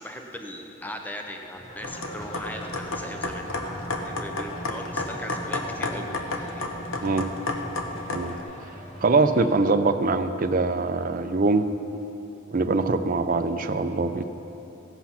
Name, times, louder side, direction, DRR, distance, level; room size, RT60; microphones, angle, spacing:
voice 1, 0.0-3.7 4.0-6.6, equal, 10° left, 3 dB, 0.6 m, -39 dB
sound 1, 1.5-9.5, equal, 35° left, 2.2 m, -44 dB
sound 2, 1.8-8.4, left 2 dB, 75° left, 1.0 m, -32 dB
voice 2, 9.0-11.7 12.5-14.2, right 3 dB, 40° right, 9 dB, 0.5 m, -23 dB
15.5 x 8.0 x 5.7 m, 2.9 s
head